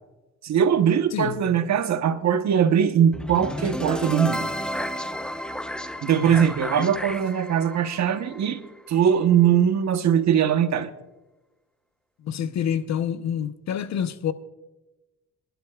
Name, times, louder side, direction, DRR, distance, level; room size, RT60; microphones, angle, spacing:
voice 1, 0.4-4.5 6.0-8.6 8.9-10.9, right 8 dB, 65° right, 1.1 m, -21 dB
voice 2, 1.1-1.4 6.1-6.5 6.8-6.9 12.2-14.3, left 8 dB, 60° left, 0.9 m, -28 dB
sound 1, 3.1-9.2, equal, 5° left, 0.7 m, -32 dB
26.5 x 11.5 x 2.4 m
cardioid pair, 90°, 30 cm